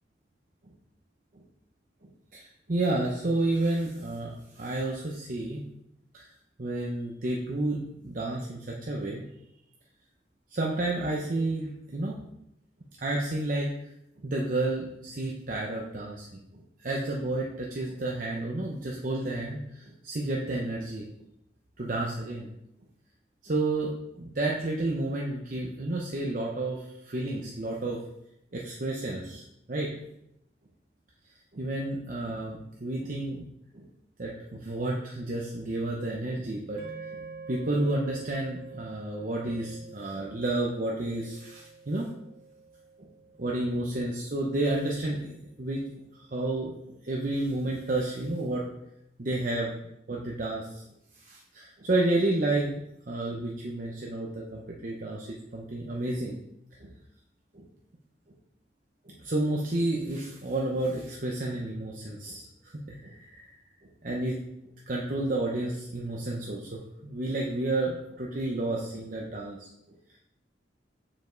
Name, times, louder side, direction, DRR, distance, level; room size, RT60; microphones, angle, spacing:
voice 1, 2.0-5.6 6.1-6.3 6.6-9.3 10.5-12.2 13.0-13.7 14.2-16.3 16.5-21.0 21.8-22.5 23.4-28.0 28.5-29.4 29.7-30.0 31.5-33.5 33.7-33.9 34.2-36.8 37.1-37.2 37.5-42.3 43.0-43.1 43.4-45.3 45.6-48.6 49.2-49.8 50.1-50.8 51.2-52.8 53.1-56.4 56.8-56.9 57.5-57.7 59.1-63.5 63.8-64.4 64.9-70.0, right 2 dB, 50° right, -2 dB, 0.8 m, -31 dB
sound 1, 36.8-45.2, right 4 dB, 65° right, 1.5 m, -47 dB
7.1 x 5.5 x 3.9 m, 0.81 s
head